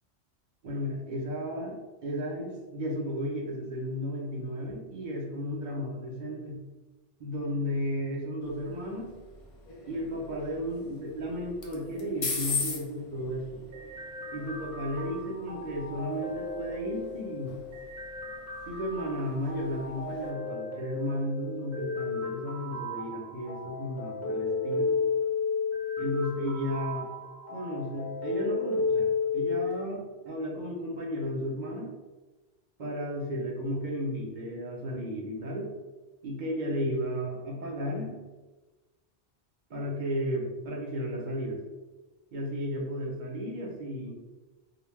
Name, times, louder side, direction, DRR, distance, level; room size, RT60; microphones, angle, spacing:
voice 1, 0.6-6.6 7.2-9.1 9.9-13.6 14.3-17.6 18.7-24.9 26.0-27.1 27.5-31.9 32.8-35.7 36.2-38.1 39.7-41.6 42.3-44.2, equal, 50° right, -1 dB, 0.7 m, -34 dB
sound 1, 8.4-20.3, left 4 dB, 60° left, 0.3 m, -41 dB
sound 2, 13.7-29.7, left 4 dB, 20° right, 0.5 m, -33 dB
2.3 x 2.2 x 3.2 m, 1.2 s
omnidirectional pair, 1.1 m